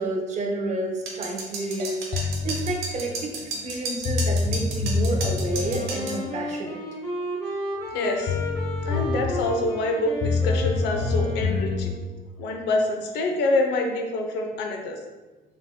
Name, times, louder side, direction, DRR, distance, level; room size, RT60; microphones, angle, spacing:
voice 1, 0.0-6.8, right 2 dB, 45° right, 1 dB, 0.9 m, -30 dB
sound 1, 1.1-6.2, right 3 dB, 70° right, 1.2 m, -33 dB
sound 2, 2.1-2.7 3.7-3.8 4.0-5.7 7.9-8.0 8.3-9.5 10.2-11.9, left 4 dB, 55° left, 0.8 m, -26 dB
Wind instrument woodwind instrument, 5.5-12.2, equal, 15° left, 1.3 m, -33 dB
voice 2, 7.9-8.4 8.8-11.9 12.4-15.0, left 2 dB, 85° left, 2 dB, 0.8 m, -26 dB
5.6 x 3.7 x 2.2 m, 1.2 s
cardioid pair, 110°, 17 cm